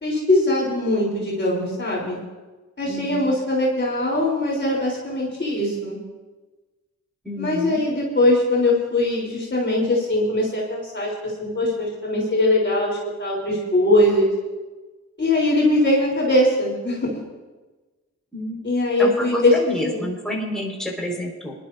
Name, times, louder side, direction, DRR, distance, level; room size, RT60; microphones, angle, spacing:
voice 1, 0.0-2.2 2.8-6.0 7.4-14.3 15.2-17.1 18.6-20.1, left 1 dB, 35° left, -4 dB, 4.0 m, -21 dB
voice 2, 2.9-3.3 7.2-7.8 18.3-18.6 19.0-21.5, left 1 dB, ahead, -2 dB, 5.3 m, -29 dB
23.0 x 12.0 x 2.8 m, 1.2 s
cardioid pair, 55°, 31 cm